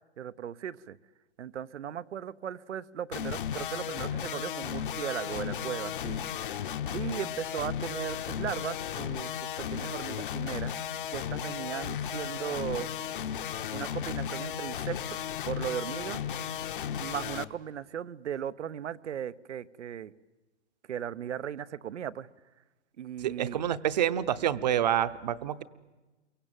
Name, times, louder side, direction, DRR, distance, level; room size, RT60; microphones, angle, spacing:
voice 1, 0.2-1.0 1.4-6.2 6.9-9.3 9.6-10.7 11.1-12.9 13.7-15.0 15.4-16.2 17.0-20.1 20.9-22.3 23.0-23.6, right 9 dB, 85° right, 15 dB, 1.0 m, -37 dB
sound 1, 3.1-17.4, left 9 dB, 50° left, 1.0 m, -35 dB
voice 2, 23.2-25.6, right 10 dB, 40° right, 15 dB, 0.8 m, -28 dB
28.0 x 23.5 x 9.0 m, 1.2 s
hypercardioid pair, 170°, 34 cm